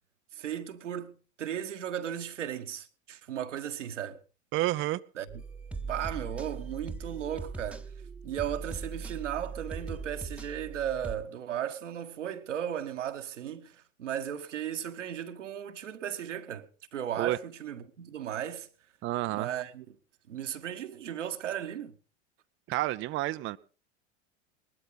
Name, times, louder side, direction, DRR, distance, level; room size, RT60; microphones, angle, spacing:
voice 1, 0.3-4.2 5.2-5.3 5.8-7.8 8.2-18.7 19.3-19.9 20.3-21.9, right 10 dB, 80° right, 1.4 m, -36 dB
voice 2, 4.5-5.0 17.2-17.4 19.0-19.5 22.7-23.6, right 16 dB, 35° right, 0.6 m, -29 dB
sound 1, 5.3-11.1, right 4 dB, 5° right, 1.2 m, -40 dB
19.5 x 12.5 x 4.0 m
hypercardioid pair, 85°, 36 cm